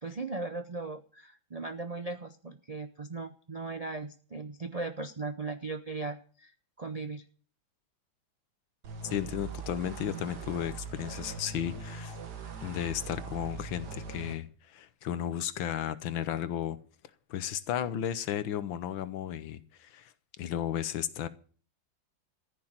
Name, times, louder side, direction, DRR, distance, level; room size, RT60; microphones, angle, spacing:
voice 1, 0.0-6.5 6.8-7.2, right 3 dB, 80° right, 0.3 m, -38 dB
sound 1, 8.8-14.4, right 5 dB, 60° right, 2.2 m, -41 dB
voice 2, 9.0-12.2 12.6-16.8 17.3-20.1 20.4-21.3, left 10 dB, 80° left, 1.7 m, -34 dB
14.5 x 6.9 x 8.8 m
omnidirectional pair, 2.1 m